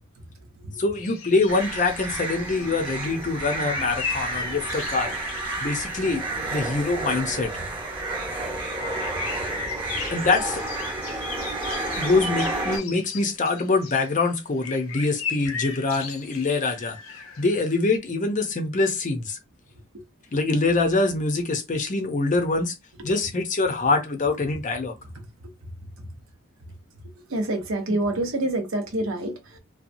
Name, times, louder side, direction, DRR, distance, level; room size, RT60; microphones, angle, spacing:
voice 1, 0.8-5.1 5.6-6.2 6.5-7.5 10.1-10.6 12.0-17.0 17.4-19.4 20.3-22.7 23.0-24.9, left 3 dB, 40° left, 0.6 m, -24 dB
sound 1, 0.9-18.0, left 6 dB, 85° left, 0.6 m, -38 dB
sound 2, 1.5-12.8, right 2 dB, 25° right, 0.9 m, -31 dB
voice 2, 27.3-29.6, right 1 dB, 75° right, 0.8 m, -27 dB
2.7 x 2.3 x 2.6 m
head